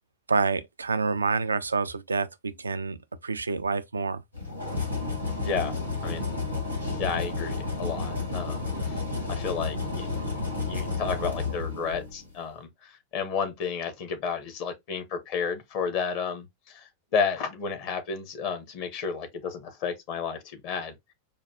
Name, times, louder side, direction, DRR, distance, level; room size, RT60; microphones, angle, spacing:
voice 1, 0.3-4.2, right 4 dB, 75° right, 0.3 m, -28 dB
sound 1, 4.3-12.3, left 3 dB, 90° left, 1.1 m, -31 dB
voice 2, 5.4-5.8 6.0-6.3 7.0-9.0 9.3-10.3 10.6-20.9, left 6 dB, 45° left, 0.9 m, -32 dB
5.0 x 2.2 x 2.7 m
figure-of-eight pair, 90°, 0 cm